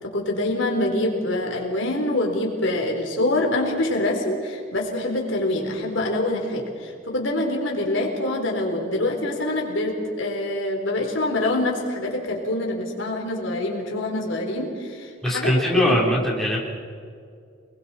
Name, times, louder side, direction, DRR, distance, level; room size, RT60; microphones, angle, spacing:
voice 1, 0.0-16.0, left 1 dB, 75° left, 0 dB, 4.0 m, -25 dB
voice 2, 15.2-16.6, equal, ahead, -5 dB, 4.0 m, -21 dB
29.0 x 21.0 x 4.4 m, 2.2 s
head